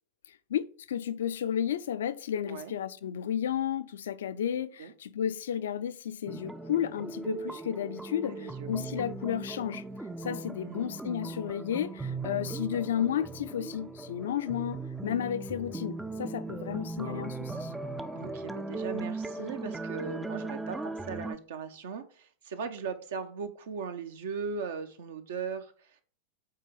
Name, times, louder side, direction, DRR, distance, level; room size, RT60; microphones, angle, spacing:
voice 1, 0.3-9.8 10.2-17.7, left 9 dB, 60° left, 0.5 m, -32 dB
sound 1, 6.3-21.4, right 3 dB, 5° right, 0.5 m, -38 dB
voice 2, 8.4-8.7 10.6-11.0 18.1-26.0, right 5 dB, 60° right, 0.9 m, -38 dB
7.6 x 4.5 x 5.0 m
figure-of-eight pair, 90°, 0 cm